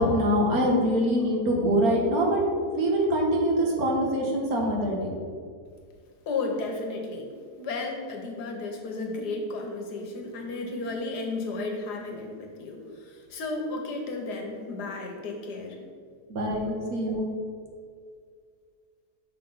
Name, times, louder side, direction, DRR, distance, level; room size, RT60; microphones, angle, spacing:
voice 1, 0.0-2.4 2.8-5.1 16.3-17.3, equal, 70° right, 0 dB, 1.6 m, -24 dB
voice 2, 6.3-7.3 7.6-15.8 16.6-16.7, left 3 dB, 90° left, 2 dB, 1.6 m, -33 dB
6.4 x 4.0 x 5.5 m, 2.1 s
omnidirectional pair, 1.7 m